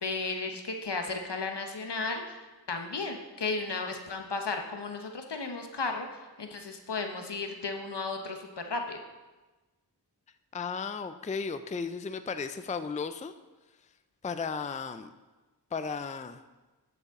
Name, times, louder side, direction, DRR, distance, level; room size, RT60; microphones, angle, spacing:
voice 1, 0.0-2.4 2.7-6.1 6.4-9.0, left 3 dB, 75° left, 4 dB, 1.0 m, -34 dB
voice 2, 10.5-13.3 14.2-15.1 15.7-16.4, left 5 dB, 20° left, 10 dB, 0.4 m, -35 dB
11.0 x 7.0 x 3.6 m, 1.2 s
wide cardioid pair, 45°, 41 cm